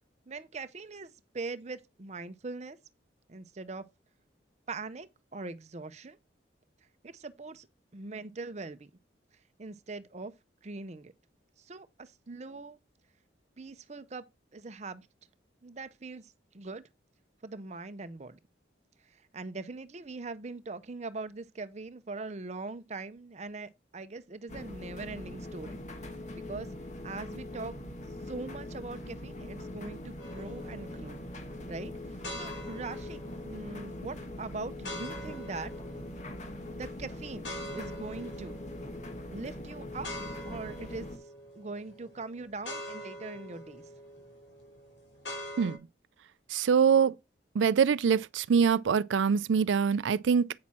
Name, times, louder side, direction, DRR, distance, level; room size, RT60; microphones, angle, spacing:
voice 1, 0.3-2.8 3.3-3.8 4.7-6.2 7.0-7.7 7.9-8.9 9.6-10.3 10.6-11.1 11.6-12.8 13.6-14.2 14.5-15.1 15.6-16.9 17.4-18.4 19.1-25.8 26.4-26.7 27.0-27.7 28.3-31.2 31.7-35.7 36.7-38.6 39.3-40.1 40.5-41.1 41.5-43.8, right 3 dB, 40° right, 0.6 m, -41 dB
sound 1, 24.5-41.2, left 1 dB, 40° left, 1.4 m, -42 dB
sound 2, 30.2-45.8, equal, 85° left, 4.7 m, -45 dB
voice 2, 46.5-47.2 47.5-50.5, right 6 dB, 90° right, 0.4 m, -24 dB
8.5 x 6.0 x 4.3 m
head